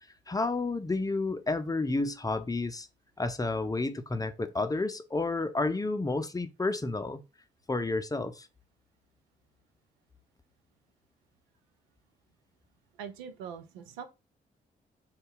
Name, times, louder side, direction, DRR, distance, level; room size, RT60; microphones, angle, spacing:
voice 1, 0.3-2.9 3.2-7.2 7.7-8.5, left 3 dB, 15° left, 0.6 m, -30 dB
voice 2, 13.0-14.0, right 7 dB, 85° right, 0.5 m, -42 dB
3.9 x 2.3 x 3.8 m
hypercardioid pair, 40°, 21 cm